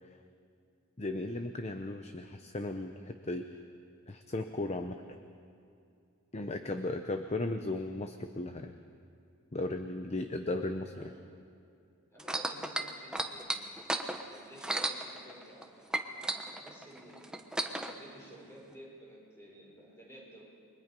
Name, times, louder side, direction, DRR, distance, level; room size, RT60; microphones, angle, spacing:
voice 1, 1.0-3.5 4.1-5.0 6.3-8.8 9.5-11.1, left 2 dB, 30° left, 7 dB, 0.8 m, -36 dB
voice 2, 12.1-13.6 14.3-17.4 17.8-20.4, equal, 10° left, -4 dB, 6.1 m, -53 dB
sound 1, 12.2-15.6 15.9-17.9 18.7-18.8, right 1 dB, 5° right, 1.0 m, -34 dB
29.0 x 22.5 x 5.4 m, 2.5 s
head